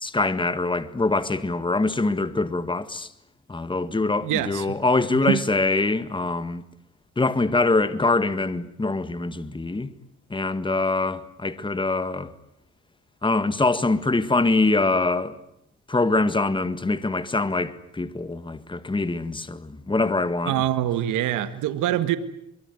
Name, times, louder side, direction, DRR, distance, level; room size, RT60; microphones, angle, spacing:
voice 1, 0.0-3.1 3.5-6.6 7.2-9.9 10.3-12.3 13.2-15.4 15.9-20.5, left 3 dB, 15° left, 1.9 m, -24 dB
voice 2, 4.2-4.7 5.3-5.4 20.5-22.2, right 12 dB, 90° right, 1.8 m, -24 dB
24.0 x 23.5 x 9.5 m
cardioid pair, 90°, 30 cm